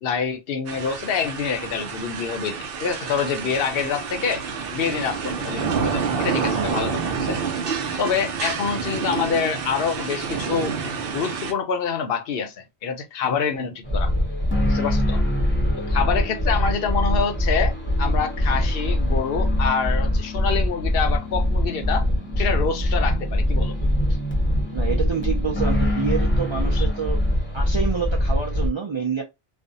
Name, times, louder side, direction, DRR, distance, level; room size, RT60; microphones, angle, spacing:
voice 1, 0.0-4.4 4.7-7.4 8.0-10.8 11.1-14.1 14.7-15.2 15.9-22.1 22.4-23.9 26.8-26.9, left 6 dB, 70° left, 0.7 m, -26 dB
sound 1, 0.7-11.5, right 5 dB, 65° right, 0.7 m, -28 dB
sound 2, 13.8-28.7, left 1 dB, 15° left, 0.7 m, -22 dB
voice 2, 24.7-27.2 27.5-29.2, right 6 dB, 50° right, 0.3 m, -27 dB
2.5 x 2.1 x 2.5 m
omnidirectional pair, 1.1 m